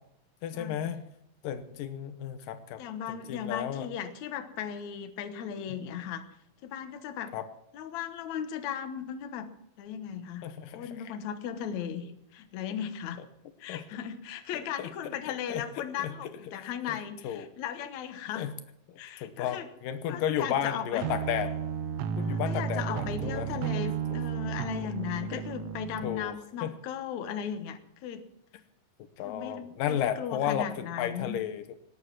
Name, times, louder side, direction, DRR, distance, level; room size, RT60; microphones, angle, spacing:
voice 1, 0.4-1.0 1.4-2.8 3.1-3.9 7.3-7.4 10.4-11.1 13.7-13.8 14.8-14.9 15.5-15.6 16.0-16.1 16.5-17.0 17.2-17.5 18.4-18.5 19.2-21.5 22.2-23.5 24.1-24.2 25.3-25.4 26.0-26.3 26.6-26.7 29.2-31.8, left 10 dB, 85° left, 9 dB, 2.7 m, -33 dB
voice 2, 2.8-6.3 6.6-7.3 7.7-9.5 9.8-13.2 13.6-18.5 19.0-19.7 20.1-21.1 22.2-28.2 29.2-31.4, left 9 dB, 65° left, 8 dB, 2.3 m, -37 dB
sound 1, 21.0-26.2, right 8 dB, 75° right, 1.4 m, -33 dB
19.0 x 9.6 x 7.3 m, 0.74 s
omnidirectional pair, 3.9 m